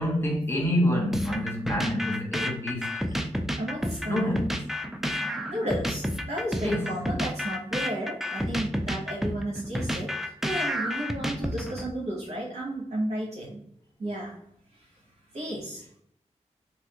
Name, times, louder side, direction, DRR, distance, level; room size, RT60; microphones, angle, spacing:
voice 1, 0.0-2.9 4.1-4.5 6.6-6.9, left 1 dB, 20° left, 1.2 m, -27 dB
sound 1, 1.1-11.9, equal, 5° right, 0.3 m, -30 dB
voice 2, 3.6-4.3 5.5-13.6 14.0-14.3 15.3-15.8, right 1 dB, 65° right, 0.9 m, -33 dB
3.2 x 2.6 x 2.8 m
wide cardioid pair, 85°, 12 cm